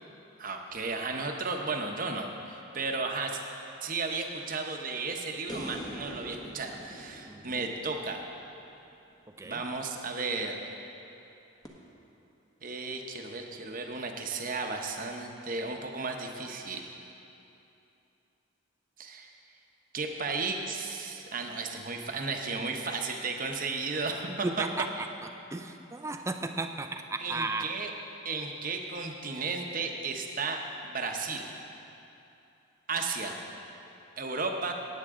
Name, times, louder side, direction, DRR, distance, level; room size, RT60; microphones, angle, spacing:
voice 1, 0.4-3.4 3.8-8.2 9.4-10.6 12.6-16.9 19.0-19.3 19.9-24.6 27.2-27.9 28.2-31.5 32.9-33.4 34.2-34.7, right 4 dB, 40° right, 3 dB, 0.9 m, -34 dB
sound 1, 5.5-8.8 11.6-11.7, equal, 20° left, 1.0 m, -43 dB
voice 2, 7.2-7.6 9.4-9.6 24.4-25.1 25.5-27.7, right 3 dB, 15° right, 6 dB, 0.4 m, -34 dB
16.5 x 9.0 x 3.7 m, 2.9 s
head